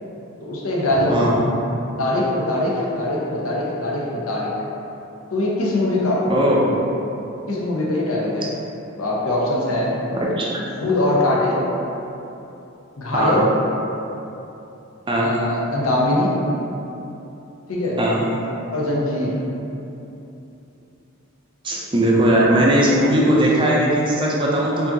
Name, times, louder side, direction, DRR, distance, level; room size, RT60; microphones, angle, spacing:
voice 1, 0.4-1.3 2.0-4.5 5.3-6.2 7.5-8.5 9.0-10.0 10.8-11.6 13.0-13.5 15.2-16.3 17.7-18.0 18.4-19.3, left 1 dB, 90° left, -5 dB, 0.8 m, -22 dB
voice 2, 1.1-1.4 6.3-6.7 10.1-10.5 13.1-13.4 15.1-15.3 18.0-18.2 21.6-24.9, right 1 dB, 25° right, -4 dB, 0.4 m, -18 dB
4.7 x 2.7 x 2.7 m, 3.0 s
head